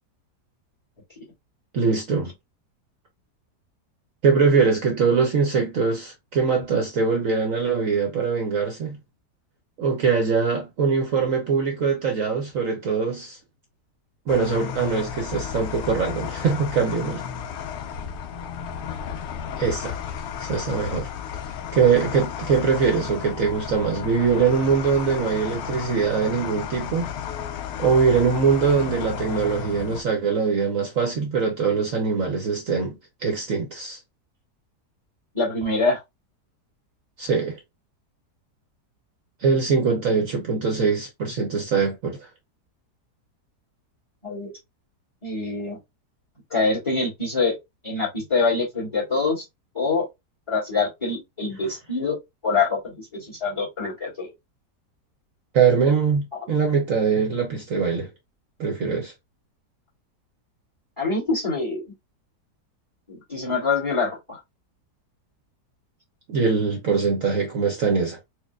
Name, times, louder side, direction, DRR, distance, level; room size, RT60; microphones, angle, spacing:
voice 1, 1.7-2.3 4.2-9.0 9.8-13.4 14.3-17.2 19.6-20.0 20.4-21.1 21.7-27.1 27.8-34.0 37.2-37.6 39.4-42.2 55.5-58.1 58.6-59.1 66.3-68.2, right 5 dB, 60° right, 1.0 m, -22 dB
sound 1, 14.3-30.0, left 8 dB, 85° left, 0.6 m, -33 dB
voice 2, 35.3-36.0 44.2-44.5 45.2-45.8 46.5-47.6 47.8-49.4 49.7-50.1 50.5-52.2 52.4-54.3 56.3-56.4 61.0-61.8 63.1-64.4, left 4 dB, 15° left, 1.8 m, -25 dB
4.4 x 2.5 x 2.3 m
omnidirectional pair, 1.8 m